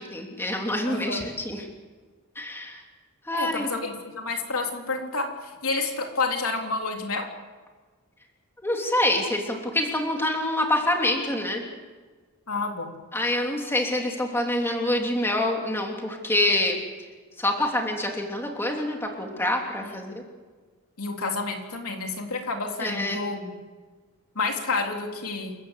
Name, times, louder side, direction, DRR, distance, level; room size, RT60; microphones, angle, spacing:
voice 1, 0.0-1.6 2.4-2.8 3.3-3.7 8.6-11.6 13.1-16.8 17.4-20.2 22.8-23.2, left 1 dB, 10° left, 1 dB, 3.0 m, -26 dB
voice 2, 0.9-1.3 3.3-7.2 12.5-12.9 19.8-19.9 21.0-23.5 24.3-25.5, left 3 dB, 75° left, 2 dB, 3.5 m, -29 dB
28.5 x 15.0 x 8.3 m, 1.4 s
head